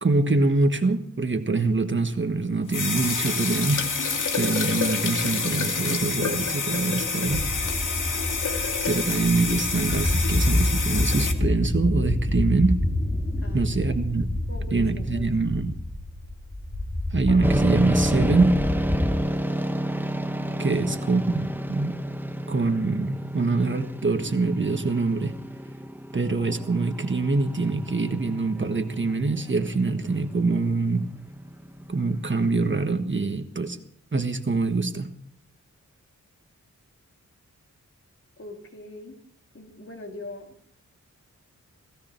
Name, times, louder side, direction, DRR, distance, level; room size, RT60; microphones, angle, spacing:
voice 1, 0.0-3.9 4.3-7.5 8.9-12.8 13.5-14.3 14.7-15.8 17.1-18.6 20.6-22.0 22.5-25.4 26.1-31.1 31.9-33.8 34.1-35.1, right 3 dB, 40° right, 7 dB, 1.4 m, -24 dB
sound 1, 2.7-11.3, left 4 dB, 75° left, 2.2 m, -28 dB
sound 2, 7.3-19.2, left 1 dB, 25° left, 3.8 m, -27 dB
voice 2, 14.5-15.3 20.7-20.9 38.4-39.2 39.5-40.6, left 2 dB, 45° left, 1 dB, 3.6 m, -41 dB
sound 3, 17.4-32.9, right 1 dB, 5° right, 1.1 m, -31 dB
17.5 x 17.0 x 4.5 m, 0.64 s
wide cardioid pair, 80°, 32 cm